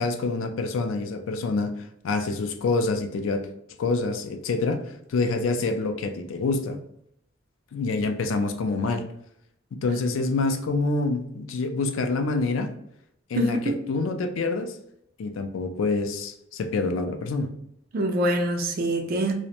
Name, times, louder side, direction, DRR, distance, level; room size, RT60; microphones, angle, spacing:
voice 1, 0.0-3.5 3.8-4.8 5.1-6.8 7.7-9.1 9.8-12.7 13.3-14.8 15.2-17.5, left 3 dB, 85° left, 7 dB, 0.4 m, -26 dB
voice 2, 13.3-13.7 17.9-19.4, right 1 dB, 50° right, 3 dB, 0.4 m, -25 dB
2.5 x 2.1 x 2.8 m, 0.75 s
head